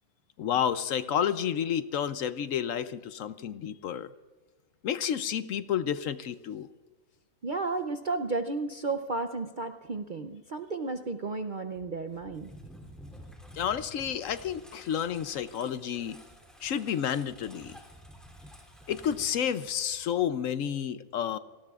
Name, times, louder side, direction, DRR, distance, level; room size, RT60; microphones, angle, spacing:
voice 1, 0.4-4.1 4.8-6.7 13.5-16.2 16.6-17.8 18.9-21.4, left 9 dB, 65° left, 13 dB, 0.9 m, -30 dB
voice 2, 7.4-12.5, right 3 dB, 50° right, 7 dB, 0.6 m, -33 dB
Engine, 11.8-20.5, equal, ahead, 3.0 m, -51 dB
29.5 x 19.0 x 2.4 m, 1.3 s
omnidirectional pair, 1.6 m